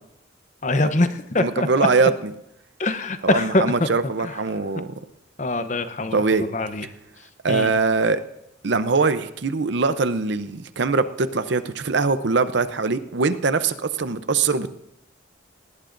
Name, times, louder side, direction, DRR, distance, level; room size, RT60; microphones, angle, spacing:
voice 1, 0.6-1.9 2.8-3.9 4.2-4.4 5.4-6.9 7.5-7.7, left 2 dB, 35° left, 10 dB, 0.7 m, -23 dB
voice 2, 1.4-2.1 3.2-4.9 6.1-6.4 7.4-8.2 8.6-14.7, right 4 dB, 65° right, 12 dB, 0.6 m, -22 dB
19.0 x 18.5 x 2.6 m, 0.84 s
head